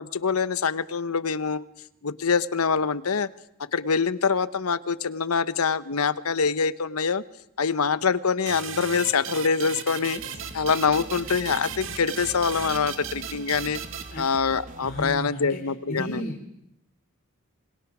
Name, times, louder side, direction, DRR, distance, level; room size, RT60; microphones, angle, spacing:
voice 1, 0.0-1.6 2.0-3.3 3.7-7.2 7.6-10.2 10.5-13.8 14.2-16.2, left 5 dB, 90° left, 15 dB, 0.9 m, -25 dB
sound 1, 8.5-14.8, right 8 dB, 65° right, 1.5 m, -37 dB
sound 2, 10.2-15.2, right 1 dB, 35° right, 1.2 m, -43 dB
voice 2, 14.8-16.6, equal, 45° left, 0 dB, 3.1 m, -34 dB
27.0 x 21.0 x 6.1 m, 0.80 s
head